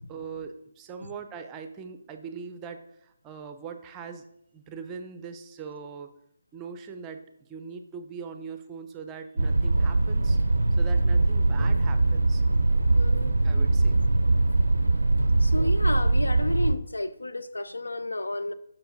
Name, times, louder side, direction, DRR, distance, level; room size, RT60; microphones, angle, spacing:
voice 1, 0.1-4.3 4.5-6.1 6.5-10.4 10.8-12.4 13.4-14.0, right 6 dB, 20° right, 0.6 m, -41 dB
sound 1, 9.4-16.8, right 2 dB, 75° right, 0.4 m, -22 dB
voice 2, 12.9-13.4 15.4-18.5, left 2 dB, 80° left, 0.5 m, -32 dB
5.8 x 4.6 x 5.2 m
figure-of-eight pair, 145°, 0 cm